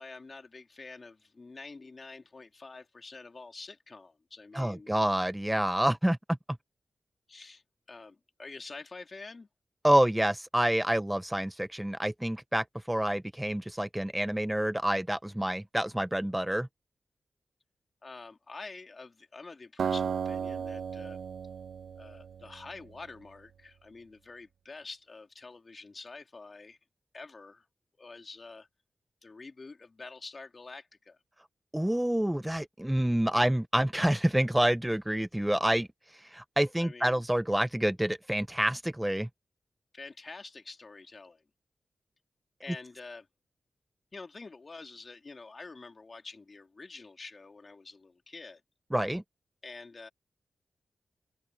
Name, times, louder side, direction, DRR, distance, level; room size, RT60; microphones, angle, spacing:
voice 1, 0.0-4.9 7.3-7.6 7.9-9.5 18.0-21.2 22.0-26.8 27.1-27.6 28.0-28.7 29.2-31.2 36.8-37.2 39.9-41.4 42.6-43.3 44.1-48.6 49.6-50.1, left 3 dB, 45° left, 2.9 m, -47 dB
voice 2, 4.5-6.2 9.8-16.7 31.7-35.9 36.3-39.3 48.9-49.2, right 1 dB, 10° right, 0.5 m, -28 dB
Acoustic guitar, 19.8-23.0, right 7 dB, 85° right, 1.0 m, -35 dB
cardioid pair, 80°, 0 cm